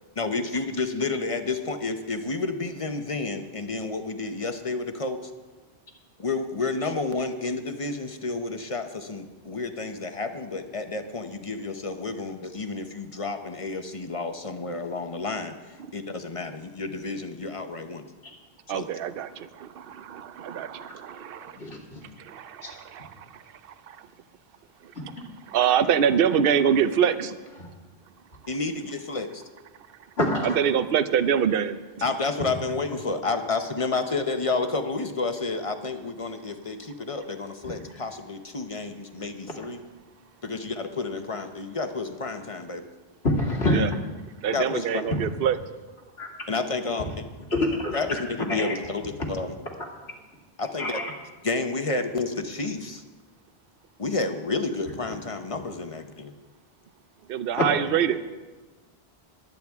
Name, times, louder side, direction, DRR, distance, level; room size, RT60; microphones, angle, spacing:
voice 1, 0.2-5.2 6.2-15.6 15.9-18.1 18.7-18.9 28.5-29.4 32.0-39.8 40.4-42.9 44.5-45.0 46.5-47.1 47.9-49.5 50.6-51.0 51.4-53.0 54.0-56.3, left 3 dB, 35° left, 7 dB, 0.8 m, -30 dB
voice 2, 18.7-21.6 22.2-24.1 24.8-24.9 25.5-27.4 30.4-31.8 43.7-43.9 44.4-45.6 57.3-58.2, right 8 dB, 65° right, 12 dB, 0.8 m, -25 dB
voice 3, 21.6-22.0 22.6-22.7 27.6-27.7 30.2-30.6 43.2-43.8 46.2-46.3 47.5-48.0 48.5-48.7 50.8-51.1 57.6-57.7, left 1 dB, 90° left, -2 dB, 2.6 m, -25 dB
22.0 x 9.2 x 3.6 m, 1.2 s
omnidirectional pair, 1.0 m